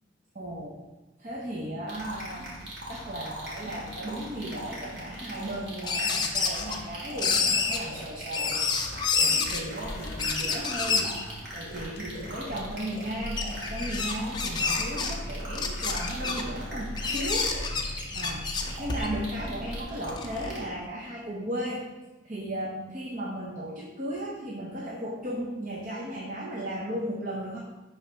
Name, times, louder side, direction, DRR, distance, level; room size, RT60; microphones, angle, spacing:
voice 1, 0.3-0.8 1.2-2.5 2.9-18.5 18.8-21.8 22.2-27.6, equal, 45° right, -3 dB, 0.9 m, -36 dB
sound 1, 1.9-20.6, right 1 dB, 60° right, 2.5 m, -41 dB
sound 2, 5.9-6.9 7.2-7.8 8.3-9.6 10.1-11.2 11.8-11.9 12.6-12.7 13.3-15.1 15.5-16.4 17.0-19.3 19.8-20.6, left 5 dB, 25° left, 0.6 m, -28 dB
sound 3, 9.0-19.8, equal, 60° left, 0.7 m, -40 dB
11.0 x 4.2 x 3.4 m, 1.1 s
head